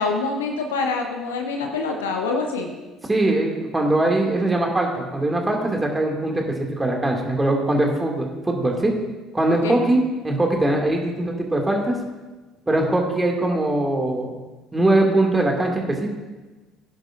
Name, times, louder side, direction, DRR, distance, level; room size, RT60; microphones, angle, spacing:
voice 1, 0.0-2.7 9.6-9.8, left 4 dB, 80° left, 3 dB, 0.9 m, -25 dB
voice 2, 3.1-8.9 9.3-11.9 12.7-14.3 14.7-16.1, right 1 dB, 15° right, 1 dB, 2.2 m, -21 dB
16.0 x 10.5 x 2.6 m, 1.2 s
figure-of-eight pair, 60°, 0 cm